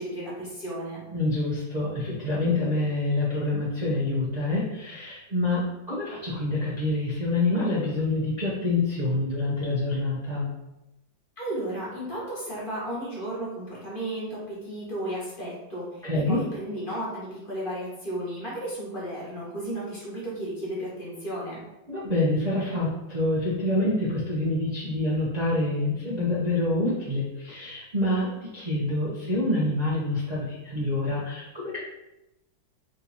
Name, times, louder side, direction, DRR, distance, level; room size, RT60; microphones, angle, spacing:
voice 1, 0.0-1.0 11.4-21.6, right 1 dB, 30° left, -7 dB, 1.2 m, -34 dB
voice 2, 1.1-10.5 16.0-16.4 21.9-31.8, left 2 dB, 50° right, -7 dB, 0.4 m, -26 dB
3.8 x 2.8 x 4.0 m, 0.93 s
omnidirectional pair, 2.2 m